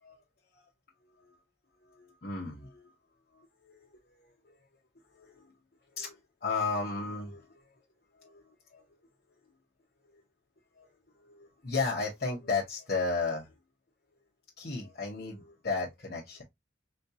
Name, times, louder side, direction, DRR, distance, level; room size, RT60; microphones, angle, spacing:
voice 1, 1.8-2.9 3.3-3.9 4.4-4.6 5.1-5.5 5.9-7.7 8.1-8.8 10.0-10.2 10.8-10.9 11.1-13.5 14.6-16.4, left 4 dB, 50° left, 0.9 m, -35 dB
4.3 x 2.3 x 2.7 m
head